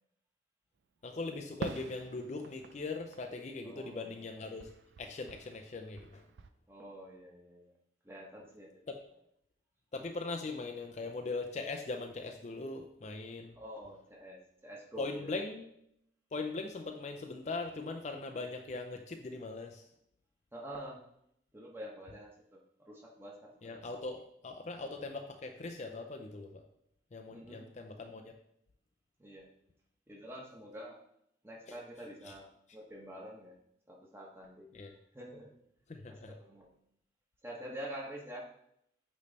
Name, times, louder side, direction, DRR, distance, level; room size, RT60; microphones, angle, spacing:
voice 1, 1.0-4.7 5.0-6.2 8.9-9.0 9.9-13.6 15.0-15.7 16.3-19.8 23.6-26.6 27.1-28.3 31.7-31.8 32.2-32.3 34.7-34.9 35.9-36.3, left 3 dB, 40° left, 4 dB, 0.4 m, -40 dB
Fireworks, 1.6-4.2 4.6-6.5, right 4 dB, 75° right, 0.4 m, -47 dB
voice 2, 3.6-4.1 6.7-7.7 8.0-8.7 13.5-15.4 20.5-21.0 21.5-22.3 22.8-23.9 27.3-27.7 29.2-29.5 30.1-31.0 31.4-32.5 32.7-33.5 33.9-34.7 35.1-35.5 36.1-36.7 37.4-38.5, equal, 15° right, -2 dB, 1.1 m, -47 dB
8.3 x 3.2 x 4.0 m, 0.74 s
head